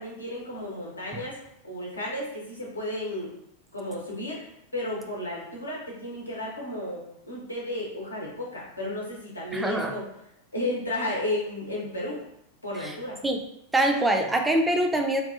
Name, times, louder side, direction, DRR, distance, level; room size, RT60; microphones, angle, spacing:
voice 1, 0.0-1.4 1.6-3.3 3.7-4.4 4.7-10.0 10.5-12.2 12.6-13.2, left 1 dB, 80° left, -4 dB, 0.7 m, -33 dB
voice 2, 9.5-9.9 12.8-12.9 13.2-13.4 13.7-15.2, right 1 dB, 10° right, 3 dB, 0.3 m, -24 dB
2.6 x 2.2 x 2.4 m, 0.76 s
figure-of-eight pair, 90°, 0 cm